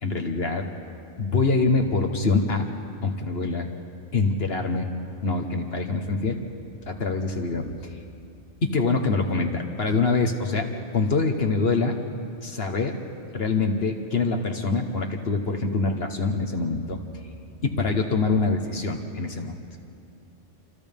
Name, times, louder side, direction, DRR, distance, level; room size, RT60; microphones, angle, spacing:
voice 1, 0.0-0.6 1.2-2.7 3.0-3.7 4.1-4.9 5.2-6.4 6.8-8.0 8.6-10.7 10.9-12.0 12.4-13.0 13.3-17.0 17.6-19.6, left 3 dB, 55° left, 4 dB, 1.5 m, -25 dB
29.0 x 27.5 x 3.6 m, 2.4 s
omnidirectional pair, 1.3 m